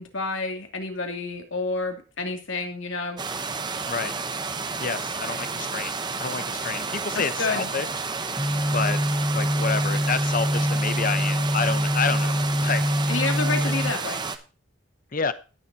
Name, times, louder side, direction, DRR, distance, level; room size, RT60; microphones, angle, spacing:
voice 1, 0.0-3.2 7.1-7.7 13.1-14.2, left 3 dB, 80° left, 3 dB, 2.6 m, -29 dB
sound 1, 3.2-14.4, right 4 dB, 20° right, 0.9 m, -31 dB
voice 2, 4.8-5.9 6.2-7.9 8.7-9.0 9.3-12.9 13.6-13.7 15.1-15.3, left 5 dB, 45° left, 12 dB, 0.9 m, -29 dB
sound 2, 8.4-13.9, equal, 10° left, 1.3 m, -25 dB
17.5 x 7.2 x 2.8 m, 0.34 s
head